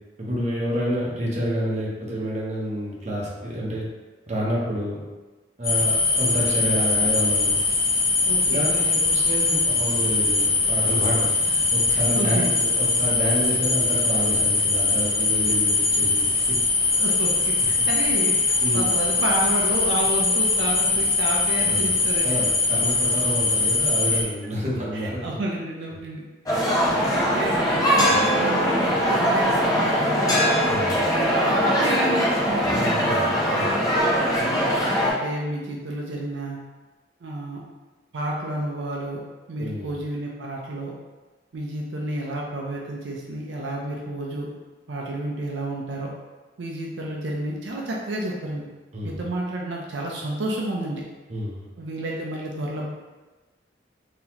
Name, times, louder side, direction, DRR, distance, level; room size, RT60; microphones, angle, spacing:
voice 1, 0.2-3.8 4.3-5.0 5.6-7.5 8.5-16.6 17.6-17.9 18.6-18.8 21.6-21.9 22.2-25.4 28.1-28.2 30.7-30.9 32.7-33.7 39.6-39.9 48.9-49.1 51.3-51.7, equal, 40° right, -5 dB, 0.9 m, -29 dB
sound 1, 5.6-24.2, left 3 dB, 55° left, 0.7 m, -22 dB
voice 2, 8.2-8.7 11.9-12.5 17.0-22.4 24.1-24.3 24.9-30.5 31.1-33.2 34.4-34.7 35.0-36.6 37.2-37.6 38.1-39.2 39.5-40.9 41.5-44.5 44.9-46.1 46.6-48.7 49.0-51.0 51.8-52.9, right 1 dB, 85° right, -2 dB, 0.5 m, -31 dB
sound 2, 26.5-35.1, equal, 20° left, 0.7 m, -21 dB
3.9 x 2.9 x 2.8 m, 1.2 s
head